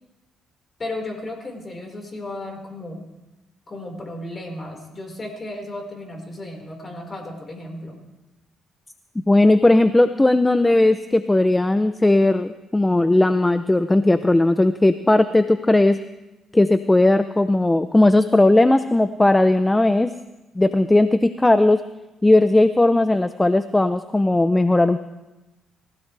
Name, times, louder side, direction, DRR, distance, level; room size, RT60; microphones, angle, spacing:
voice 1, 0.8-3.1 3.7-8.0, left 1 dB, 35° left, 1 dB, 4.7 m, -34 dB
voice 2, 9.3-16.0 16.5-20.1 20.6-21.8 22.2-25.0, left 2 dB, 15° left, 11 dB, 0.6 m, -17 dB
27.0 x 16.0 x 3.4 m, 1.0 s
cardioid pair, 90°, 0 cm